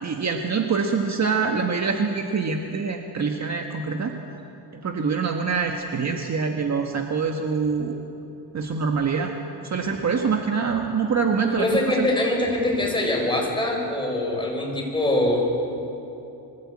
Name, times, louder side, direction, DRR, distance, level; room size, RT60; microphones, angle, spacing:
voice 1, 0.0-4.1 4.8-7.9 8.5-9.3 9.6-12.1, right 5 dB, 35° right, 3 dB, 1.6 m, -25 dB
voice 2, 11.6-15.5, left 1 dB, 10° left, -1 dB, 6.7 m, -23 dB
25.0 x 16.5 x 8.6 m, 2.9 s
cardioid pair, 105°, 46 cm